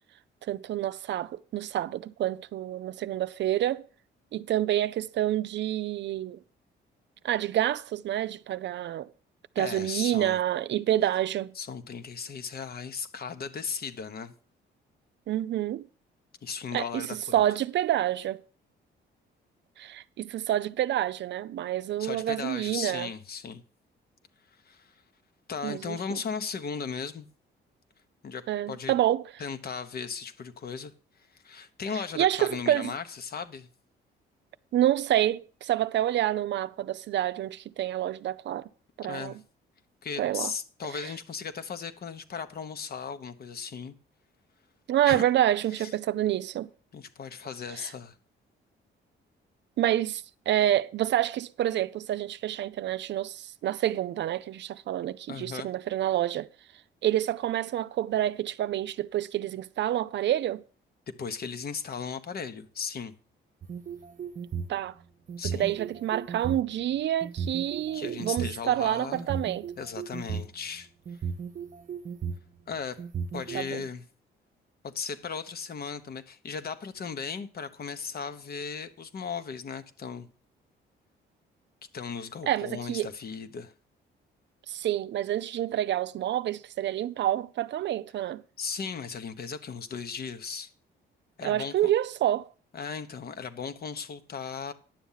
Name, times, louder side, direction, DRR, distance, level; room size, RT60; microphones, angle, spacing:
voice 1, 0.5-3.8 4.3-6.4 7.2-9.1 9.6-11.5 15.3-15.9 16.7-17.0 17.3-18.4 19.8-23.1 25.6-26.2 28.5-29.3 32.2-32.9 34.7-38.7 39.0-39.3 40.2-40.5 41.0-41.1 44.9-46.7 47.8-47.9 49.8-56.5 57.0-60.6 64.7-64.9 65.5-69.7 73.5-73.8 82.5-83.1 84.7-88.4 91.4-92.5, right 12 dB, 65° right, 0.5 m, -28 dB
voice 2, 9.6-10.4 11.5-14.3 16.4-17.4 22.0-23.6 24.6-24.9 25.5-27.3 28.2-28.9 29.4-33.7 39.0-39.4 40.0-43.9 45.1-45.2 45.8-45.9 46.9-48.1 55.3-55.7 61.2-63.1 65.4-65.7 67.9-69.4 69.8-70.9 72.7-73.0 73.3-74.0 74.8-80.3 81.9-83.7 88.6-90.7 91.4-91.9 92.7-94.7, left 6 dB, 50° left, 1.1 m, -37 dB
sound 1, 63.6-64.8 65.3-66.6 67.2-68.5 69.1-70.5 71.1-72.4 73.0-73.6, right 6 dB, 40° right, 0.8 m, -35 dB
10.5 x 7.1 x 5.7 m
cardioid pair, 90°, 20 cm